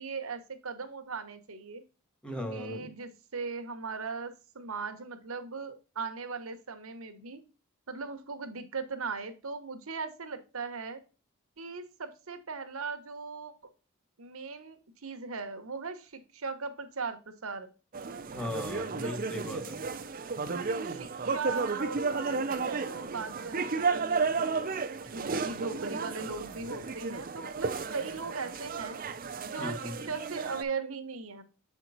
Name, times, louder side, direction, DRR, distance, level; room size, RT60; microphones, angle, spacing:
voice 1, 0.0-1.8 2.5-7.4 7.9-11.0 11.6-13.5 14.2-17.7 19.0-19.2 20.5-24.7 25.0-29.0 29.4-31.4, right 4 dB, 75° right, 1.1 m, -39 dB
voice 2, 2.2-2.9 18.3-19.8 29.6-30.0, left 1 dB, 5° left, 1.4 m, -38 dB
sound 1, 17.9-30.6, right 4 dB, 40° right, 0.6 m, -33 dB
7.5 x 4.5 x 4.0 m
head